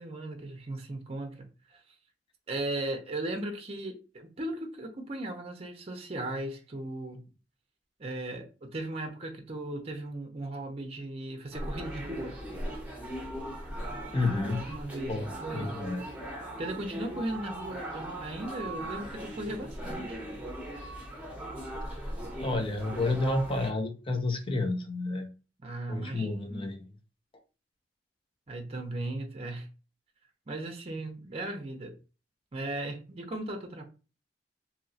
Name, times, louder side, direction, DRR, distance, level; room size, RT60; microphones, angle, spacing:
voice 1, 0.0-1.8 2.5-7.2 8.0-12.4 14.7-15.8 16.6-20.2 25.6-26.6 28.5-29.7 30.5-32.0 32.5-33.8, right 1 dB, 35° right, 0.6 m, -37 dB
sound 1, 11.5-23.7, right 1 dB, 10° right, 0.8 m, -39 dB
voice 2, 14.1-14.6 15.1-16.0 21.9-22.1 22.4-25.3 25.9-26.9, left 2 dB, 30° left, 0.7 m, -30 dB
2.9 x 2.8 x 2.7 m
head